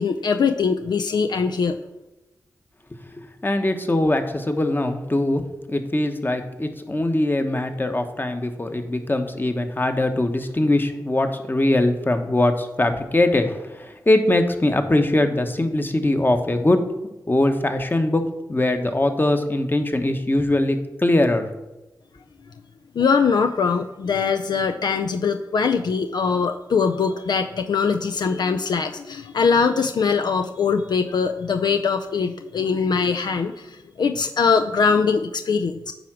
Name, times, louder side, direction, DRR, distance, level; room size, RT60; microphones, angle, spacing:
voice 1, 0.0-1.8 23.0-35.9, left 5 dB, 70° left, 7 dB, 0.4 m, -22 dB
voice 2, 3.4-5.4 5.7-16.8 17.3-18.2 18.5-21.5, left 1 dB, 25° left, 7 dB, 1.1 m, -21 dB
9.5 x 3.5 x 6.1 m, 1.0 s
cardioid pair, 45°, 8 cm